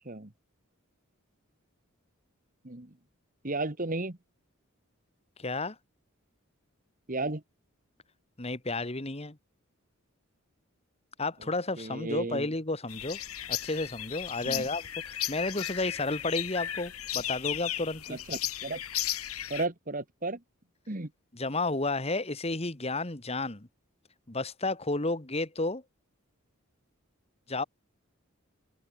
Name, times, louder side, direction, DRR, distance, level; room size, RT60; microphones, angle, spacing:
voice 1, 3.4-4.2 7.1-7.4 11.8-12.5 14.4-14.6 18.1-18.8 19.5-20.4 20.9-21.1, right 2 dB, 40° right, 1.8 m, -34 dB
voice 2, 5.4-5.8 8.4-9.4 11.2-13.2 13.5-18.2 21.3-23.7 24.3-25.8 27.5-27.6, left 2 dB, 30° left, 1.7 m, -32 dB
sound 1, 12.9-19.7, left 12 dB, 90° left, 3.7 m, -35 dB
open air
head